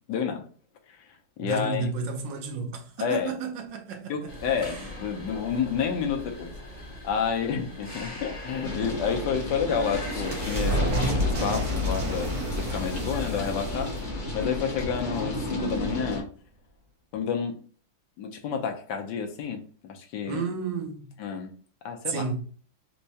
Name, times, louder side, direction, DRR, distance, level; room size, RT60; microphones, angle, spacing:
voice 1, 0.1-0.4 1.4-1.9 3.0-3.3 4.1-6.5 7.0-16.3 17.1-17.6 18.2-20.4 21.2-21.5 21.8-22.3, left 7 dB, 70° left, 1.2 m, -30 dB
voice 2, 1.4-4.9 20.2-21.1 22.1-22.4, right 5 dB, 75° right, 1.4 m, -32 dB
sound 1, 4.3-10.8, left 1 dB, 25° left, 1.0 m, -41 dB
sound 2, 8.6-16.2, left 1 dB, 40° left, 0.7 m, -33 dB
sound 3, 9.4-15.6, equal, 55° right, 1.3 m, -30 dB
4.5 x 2.1 x 2.7 m
omnidirectional pair, 2.1 m